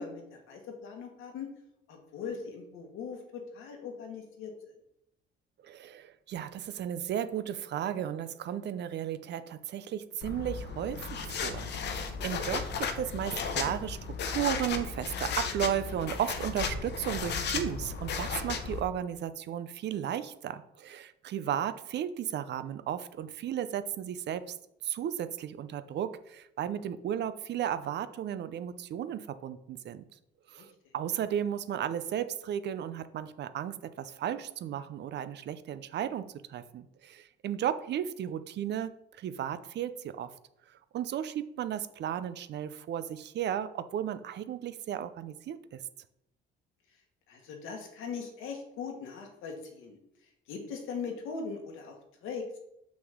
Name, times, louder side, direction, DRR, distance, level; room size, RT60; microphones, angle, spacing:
voice 1, 0.0-1.5 1.9-4.5 30.6-30.7 47.3-50.0 50.5-51.9 52.2-52.5, left 5 dB, 80° left, 3 dB, 1.6 m, -40 dB
voice 2, 5.6-24.6 24.8-30.0 30.5-40.3 40.9-45.8, right 10 dB, 55° right, 13 dB, 0.5 m, -34 dB
sound 1, 10.2-18.8, left 5 dB, 60° left, 0.9 m, -35 dB
6.2 x 6.0 x 3.7 m, 0.78 s
cardioid pair, 100°, 21 cm